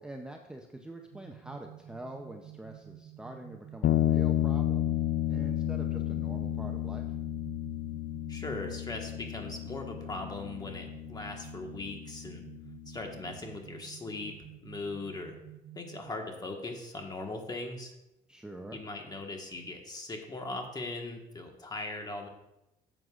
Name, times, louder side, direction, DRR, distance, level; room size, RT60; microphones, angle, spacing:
voice 1, 0.0-4.9 5.3-7.1 18.3-18.8, right 1 dB, 5° right, 2 dB, 0.6 m, -45 dB
sound 1, 1.1-16.1, right 12 dB, 75° right, 0.5 m, -51 dB
sound 2, 3.8-13.3, left 12 dB, 60° left, 0.4 m, -32 dB
voice 2, 8.3-12.4 12.9-14.3 14.6-15.3 15.7-17.9 18.7-22.3, left 2 dB, 25° left, 3 dB, 1.4 m, -39 dB
12.5 x 7.7 x 2.4 m, 0.91 s
cardioid pair, 110°, 17 cm